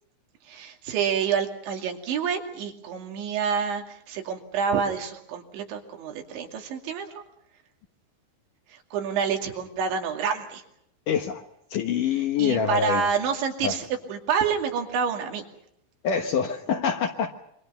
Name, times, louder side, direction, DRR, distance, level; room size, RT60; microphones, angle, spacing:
voice 1, 0.5-7.2 8.7-10.6 12.4-15.4, right 6 dB, 85° right, 3 dB, 4.8 m, -28 dB
voice 2, 11.1-11.4 11.7-13.1 13.6-13.7 16.0-17.3, left 7 dB, 65° left, 5 dB, 2.3 m, -25 dB
27.5 x 24.5 x 5.7 m, 0.75 s
omnidirectional pair, 5.1 m